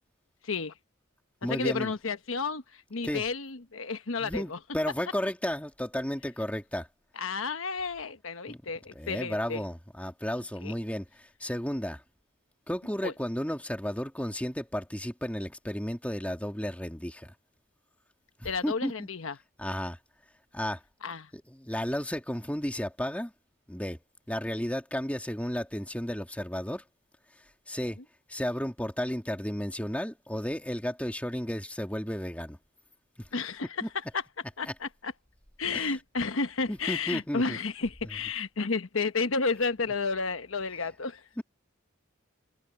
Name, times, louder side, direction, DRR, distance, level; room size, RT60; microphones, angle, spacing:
voice 1, 0.4-0.7 1.5-4.6 7.2-9.6 10.6-10.7 13.0-13.1 18.4-19.4 21.0-21.3 33.3-33.8 34.1-34.2 34.6-35.1 35.6-41.2, left 4 dB, 75° left, 1.1 m, -31 dB
voice 2, 1.4-1.9 3.0-3.2 4.2-6.9 8.5-8.6 9.0-12.0 12.7-17.3 18.4-19.1 19.6-20.0 20.5-20.8 21.3-23.3 23.7-24.0 24.3-26.8 27.7-28.0 28.3-32.6 33.2-33.3 33.8-33.9 34.7-34.8 35.7-36.0 36.7-37.6 41.4-41.5, equal, 5° left, 2.0 m, -33 dB
head